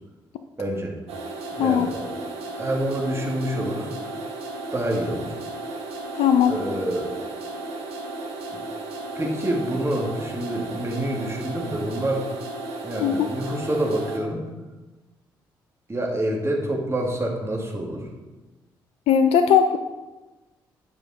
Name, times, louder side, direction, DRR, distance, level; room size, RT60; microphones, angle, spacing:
voice 1, 0.6-0.9 1.6-2.1 2.6-3.9 4.7-5.3 6.5-7.1 9.2-12.3 12.8-14.5 15.9-18.1, right 1 dB, 25° right, -1 dB, 2.2 m, -27 dB
sound 1, 1.1-14.2, right 2 dB, 70° right, 1.3 m, -34 dB
voice 2, 6.1-6.5 13.0-13.3 19.1-19.8, left 8 dB, 65° left, 8 dB, 0.4 m, -18 dB
9.7 x 5.1 x 4.2 m, 1.2 s
hypercardioid pair, 40°, 11 cm